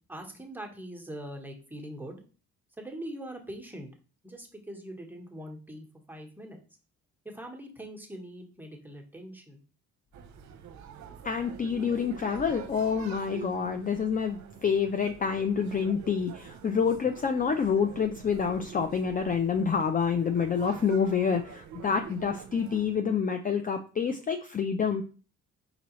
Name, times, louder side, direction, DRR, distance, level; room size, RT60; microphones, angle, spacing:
voice 1, 0.1-2.2 2.8-3.9 4.2-6.6 7.2-9.6, right 1 dB, 5° right, 2 dB, 1.2 m, -42 dB
sound 1, 10.1-22.9, right 7 dB, 70° right, 0.7 m, -46 dB
voice 2, 11.2-25.0, left 6 dB, 30° left, 6 dB, 0.4 m, -28 dB
4.6 x 3.8 x 3.1 m, 0.36 s
cardioid pair, 90°, 30 cm